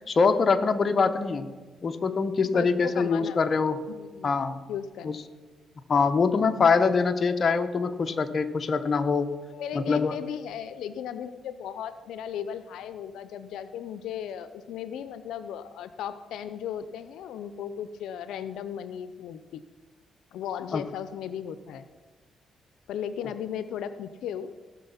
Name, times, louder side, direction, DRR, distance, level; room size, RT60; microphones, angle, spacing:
voice 1, 0.0-1.5 1.8-3.8 4.2-4.6 5.0-5.2 5.9-9.3 9.7-10.1 20.7-20.8, left 5 dB, 40° left, 7 dB, 0.8 m, -24 dB
voice 2, 2.5-3.4 3.9-4.3 4.7-5.2 9.5-19.6 20.3-21.9 22.9-24.7, left 9 dB, 90° left, 12 dB, 0.5 m, -36 dB
17.5 x 6.1 x 5.7 m, 1.4 s
cardioid pair, 100°, 0 cm